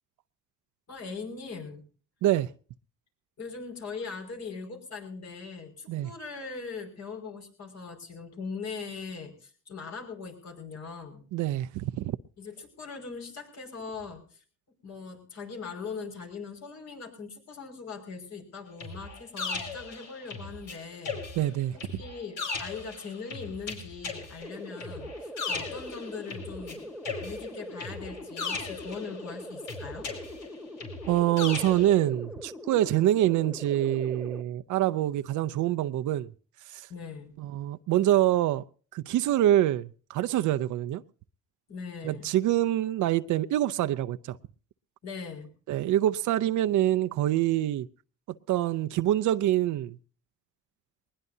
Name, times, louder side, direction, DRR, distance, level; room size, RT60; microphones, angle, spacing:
voice 1, 0.9-1.9 3.4-11.2 12.4-14.4 14.8-21.2 21.7-26.9 27.2-30.1 36.9-37.3 41.7-42.3 45.0-45.5, left 5 dB, 60° left, 5.6 m, -40 dB
voice 2, 2.2-2.5 5.9-6.1 11.3-12.2 21.4-22.0 31.1-36.3 36.7-36.9 37.4-38.6 38.9-41.0 42.0-44.4 45.7-47.9 48.5-50.0, right 13 dB, 80° right, 0.6 m, -25 dB
sound 1, 18.8-20.7 21.0-26.7 27.0-29.3 29.7-31.9, left 4 dB, 90° left, 5.0 m, -37 dB
sound 2, 24.4-34.4, left 1 dB, ahead, 1.6 m, -42 dB
20.5 x 20.0 x 2.7 m
cardioid pair, 90°, 30 cm